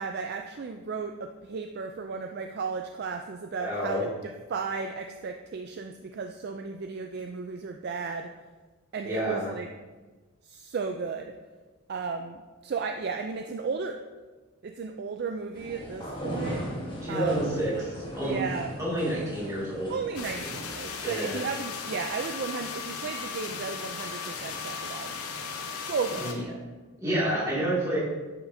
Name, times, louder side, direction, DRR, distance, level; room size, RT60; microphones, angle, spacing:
voice 1, 0.0-8.3 8.9-9.7 10.4-11.3 11.9-14.0 14.6-16.6 17.1-17.5 18.2-18.7 19.9-26.4, right 5 dB, 45° right, 4 dB, 0.3 m, -34 dB
voice 2, 3.6-4.0 9.0-9.5 17.0-18.4 18.8-19.9 21.0-21.4 26.2-26.4 27.0-28.0, right 1 dB, 15° right, -8 dB, 2.2 m, -29 dB
sound 1, 15.5-20.7, equal, 20° left, 1.2 m, -38 dB
sound 2, 20.2-26.3, left 5 dB, 90° left, 0.8 m, -36 dB
9.6 x 5.7 x 2.7 m, 1.3 s
head